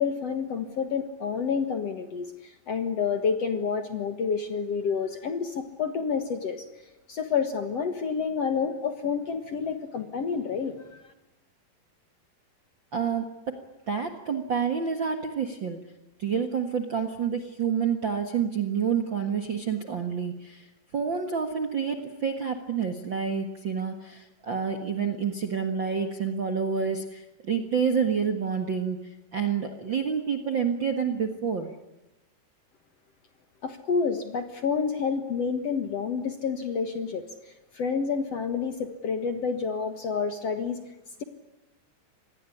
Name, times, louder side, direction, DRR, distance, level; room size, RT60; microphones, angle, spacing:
voice 1, 0.0-6.7 7.1-10.7 33.6-40.8, left 6 dB, 55° left, 8 dB, 2.0 m, -29 dB
voice 2, 12.9-13.2 13.9-15.8 16.2-20.7 20.9-29.0 29.3-31.7, right 6 dB, 50° right, 8 dB, 1.5 m, -28 dB
26.5 x 20.5 x 10.0 m, 0.95 s
omnidirectional pair, 4.4 m